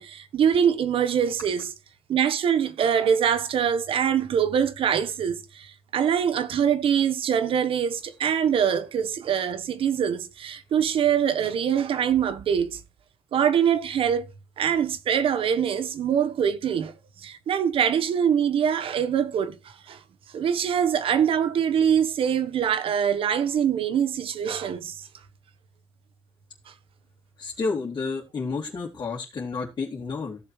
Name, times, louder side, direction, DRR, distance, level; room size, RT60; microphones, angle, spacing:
voice 1, 0.0-1.7 2.1-12.8 13.3-14.3 14.6-16.9 17.2-20.0 20.3-25.1, right 8 dB, 75° right, 1.3 m, -24 dB
voice 2, 27.4-30.4, left 4 dB, 45° left, 2.9 m, -30 dB
16.0 x 6.8 x 3.3 m
cardioid pair, 130°, 9 cm